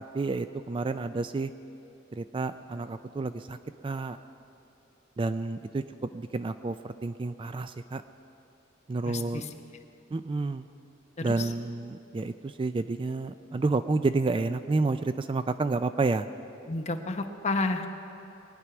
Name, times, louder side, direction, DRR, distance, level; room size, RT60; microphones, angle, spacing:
voice 1, 0.1-1.5 2.1-3.6 3.8-4.2 5.2-5.8 6.1-8.0 8.9-9.4 10.1-10.7 11.2-16.3, right 3 dB, 25° right, 11 dB, 0.3 m, -30 dB
voice 2, 9.0-9.5 11.2-11.5 16.7-17.9, left 3 dB, 35° left, 5 dB, 0.9 m, -31 dB
22.0 x 9.7 x 5.9 m, 2.9 s
head